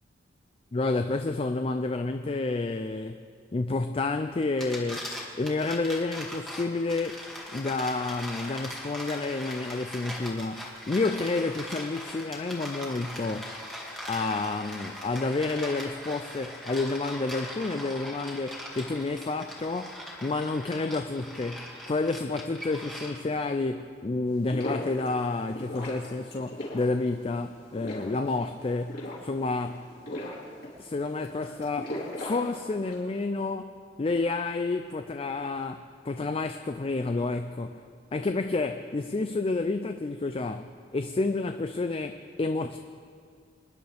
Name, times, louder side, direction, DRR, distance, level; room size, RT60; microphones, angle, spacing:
voice 1, 0.7-3.2 3.5-5.1 5.4-7.2 7.5-13.5 14.1-19.9 20.2-29.9 30.8-37.8 38.1-42.8, left 3 dB, 30° left, 7 dB, 0.4 m, -30 dB
sound 1, 4.4-23.4, left 1 dB, ahead, 1.9 m, -40 dB
sound 2, 24.3-33.1, left 1 dB, 60° left, 4.5 m, -39 dB
26.5 x 10.5 x 3.5 m, 2.2 s
head